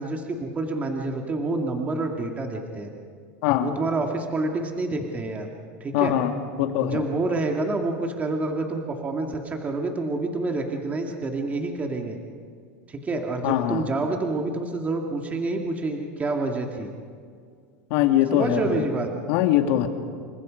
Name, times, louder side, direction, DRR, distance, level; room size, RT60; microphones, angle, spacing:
voice 1, 0.0-2.9 3.6-5.5 5.8-6.1 6.8-12.2 12.9-16.9 18.3-19.1, right 2 dB, 20° right, 2 dB, 2.2 m, -28 dB
voice 2, 5.9-6.3 6.6-7.0 13.4-13.9 17.9-18.8 19.3-19.9, left 12 dB, 65° left, 6 dB, 2.3 m, -22 dB
29.0 x 24.5 x 5.3 m, 2.2 s
supercardioid pair, 135°, 7 cm